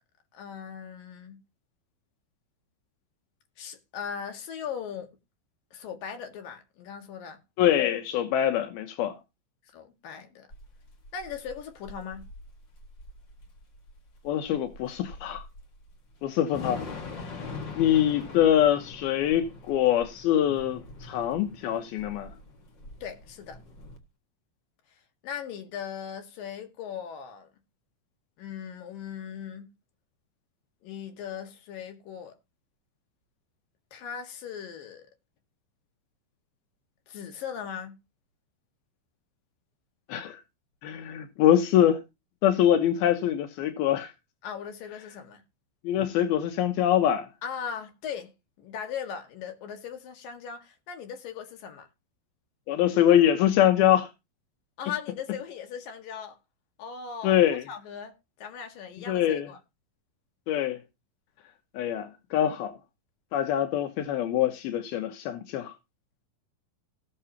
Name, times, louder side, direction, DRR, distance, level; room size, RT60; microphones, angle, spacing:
voice 1, 0.3-1.4 3.6-5.2 5.7-7.4 9.7-10.5 11.1-12.3 23.0-23.6 25.2-27.5 28.4-29.7 30.8-32.4 33.9-35.1 37.1-38.0 44.4-45.4 47.4-48.3 48.6-51.9 54.8-56.4 56.8-57.4 57.7-59.6, left 7 dB, 70° left, 3.5 m, -38 dB
voice 2, 7.6-9.2 14.2-15.4 16.2-16.8 17.8-22.3 40.1-40.4 40.8-42.0 42.4-44.1 45.8-47.3 52.7-54.1 57.2-57.6 59.1-59.5 60.5-60.8 61.7-62.7 63.3-65.7, left 11 dB, 90° left, 3.1 m, -24 dB
Thunder / Rain, 10.5-24.0, left 3 dB, 40° left, 1.9 m, -43 dB
17.5 x 6.9 x 2.9 m
omnidirectional pair, 4.2 m